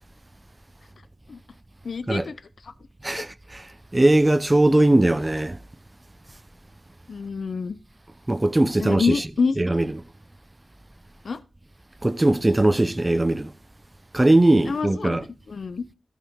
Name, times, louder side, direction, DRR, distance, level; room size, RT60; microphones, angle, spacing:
voice 1, 1.8-2.3 2.6-2.7 3.1-3.3 7.1-7.8 8.8-9.6 11.2-11.4 14.7-15.8, left 5 dB, 70° left, 0.7 m, -27 dB
voice 2, 3.9-5.6 8.3-9.2 9.6-9.9 12.0-13.5 14.1-15.2, right 1 dB, 25° right, 0.7 m, -19 dB
13.5 x 5.7 x 4.7 m
cardioid pair, 55°, 0 cm